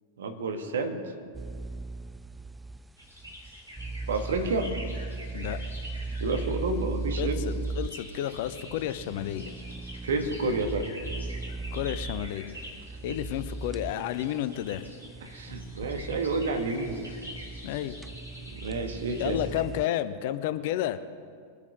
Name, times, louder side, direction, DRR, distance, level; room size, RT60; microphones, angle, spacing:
voice 1, 0.2-1.1 4.1-4.7 6.2-7.5 10.0-10.9 15.2-17.0 18.5-19.4, right 3 dB, 65° right, 5 dB, 1.6 m, -30 dB
sound 1, 1.3-19.8, right 3 dB, 10° right, 0.3 m, -38 dB
sound 2, 3.0-19.6, left 1 dB, 85° right, 3.5 m, -46 dB
voice 2, 7.2-9.5 11.7-12.5 13.0-14.9 17.6-18.0 19.2-21.0, left 12 dB, 50° left, 12 dB, 0.7 m, -31 dB
22.5 x 8.5 x 5.1 m, 2.1 s
figure-of-eight pair, 90°, 0 cm